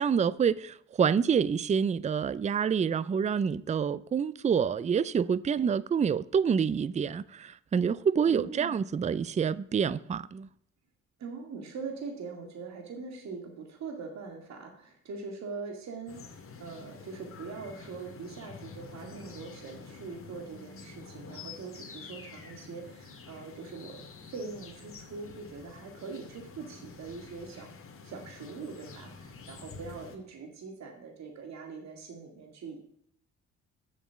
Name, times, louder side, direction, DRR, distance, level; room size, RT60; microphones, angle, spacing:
voice 1, 0.0-10.5, right 7 dB, 25° right, 0.4 m, -27 dB
voice 2, 8.3-8.8 11.2-27.7 28.0-32.9, right 4 dB, 65° right, 2.1 m, -42 dB
sound 1, 16.1-30.2, left 4 dB, 45° left, 2.1 m, -48 dB
7.6 x 7.2 x 8.1 m
cardioid pair, 90°, 30 cm